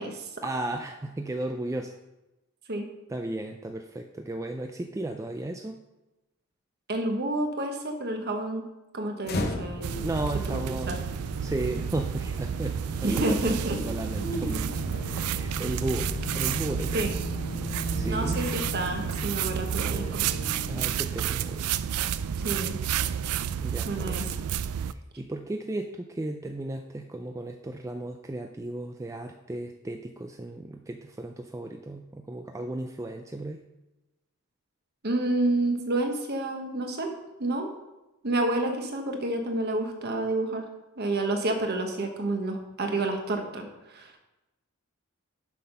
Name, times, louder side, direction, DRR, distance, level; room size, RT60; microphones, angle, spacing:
voice 1, 0.4-2.0 3.1-5.7 10.0-11.0 11.4-17.1 18.0-18.4 20.7-21.7 23.6-24.3 24.9-33.6, right 2 dB, 15° right, 4 dB, 0.3 m, -35 dB
voice 2, 6.9-8.7 8.9-10.0 10.5-11.0 13.0-13.8 14.1-14.7 16.9-17.1 18.1-20.3 22.4-22.8 23.9-24.3 35.0-37.1 37.4-37.7 38.2-40.7 41.0-44.2, right 2 dB, 45° right, 4 dB, 1.2 m, -29 dB
sound 1, 9.2-21.2, left 2 dB, 45° left, 0.9 m, -37 dB
sound 2, 9.8-24.9, right 8 dB, 85° right, 0.4 m, -31 dB
7.5 x 5.7 x 5.6 m, 1.0 s
head